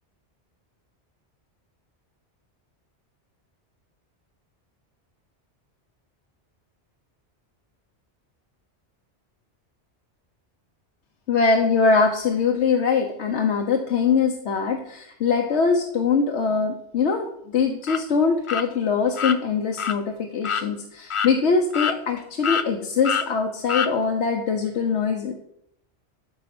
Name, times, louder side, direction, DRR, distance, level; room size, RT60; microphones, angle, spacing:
voice 1, 11.3-25.3, left 5 dB, 80° left, 3 dB, 1.2 m, -22 dB
sound 1, 17.8-18.0 18.5-18.7 19.2-19.4 19.8-20.0 20.4-20.7 21.1-21.3 21.7-22.2 22.4-22.7 23.0-23.3 23.7-23.9, left 7 dB, 55° left, 0.3 m, -25 dB
12.0 x 4.8 x 6.0 m, 0.75 s
omnidirectional pair, 1.1 m